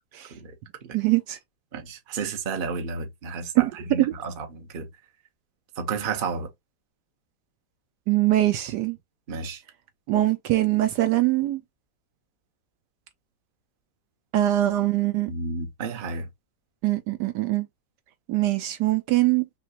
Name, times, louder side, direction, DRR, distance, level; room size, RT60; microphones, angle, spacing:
voice 1, 0.9-1.4 3.6-3.7 4.0-4.1 8.1-9.0 10.1-11.6 14.3-15.3 16.8-17.7 18.3-19.4, right 15 dB, 75° right, 1.1 m, -22 dB
voice 2, 1.7-4.9 5.8-6.5 9.3-9.6 15.3-16.3, right 4 dB, 40° right, 0.8 m, -32 dB
5.6 x 2.4 x 2.8 m
omnidirectional pair, 1.9 m